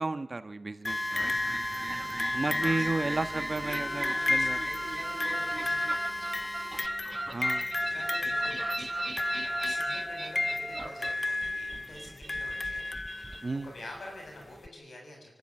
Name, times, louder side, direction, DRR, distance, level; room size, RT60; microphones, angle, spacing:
voice 1, 0.0-1.4 2.3-4.6 7.3-7.7 13.4-13.7, right 3 dB, 55° right, 10 dB, 1.3 m, -33 dB
sound 1, 0.8-13.7 14.6-14.7, left 2 dB, 45° left, 0.7 m, -33 dB
Drill, 0.9-6.9, equal, ahead, 1.2 m, -39 dB
sound 2, 1.1-13.4, right 2 dB, 35° right, 1.4 m, -37 dB
voice 2, 1.8-6.4 7.4-15.4, left 1 dB, 80° left, 1 dB, 7.5 m, -48 dB
26.5 x 12.5 x 9.8 m, 1.0 s
cardioid pair, 40°, 0 cm